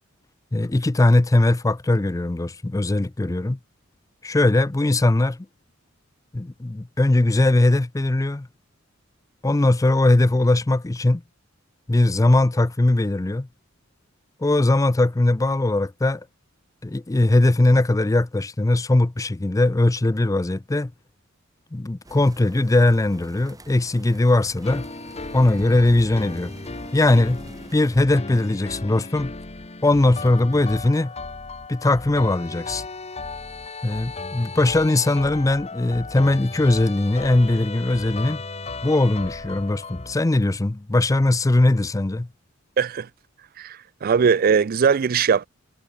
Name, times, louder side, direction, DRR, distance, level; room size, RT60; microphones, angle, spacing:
voice 1, 0.5-3.6 4.2-5.5 6.3-8.5 9.4-11.2 11.9-13.5 14.4-16.2 16.8-20.9 21.7-24.8 25.3-26.5 26.9-27.4 27.7-29.3 29.8-31.1 31.7-32.8 33.8-38.4 38.8-42.3, left 2 dB, 15° left, 0.4 m, -20 dB
sound 1, 22.0-28.0, right 1 dB, 20° right, 3.6 m, -44 dB
sound 2, 24.6-40.2, left 3 dB, 30° left, 1.7 m, -36 dB
voice 2, 42.8-43.1 43.6-45.5, right 6 dB, 45° right, 0.4 m, -20 dB
head